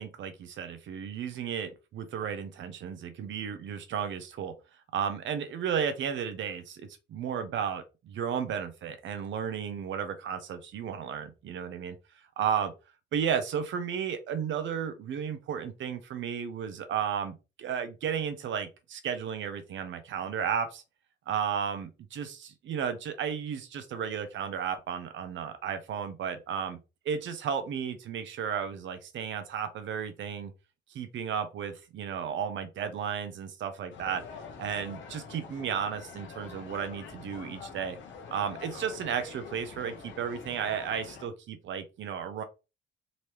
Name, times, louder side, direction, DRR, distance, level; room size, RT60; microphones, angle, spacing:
voice 1, 0.0-4.5 4.9-12.0 12.4-12.7 13.1-20.8 21.3-26.8 27.0-30.5 30.9-34.2 34.6-38.0 38.3-42.4, right 7 dB, 70° right, 0.9 m, -33 dB
sound 1, 33.9-41.3, left 5 dB, 70° left, 1.2 m, -45 dB
4.0 x 2.9 x 3.3 m
cardioid pair, 90°, 20 cm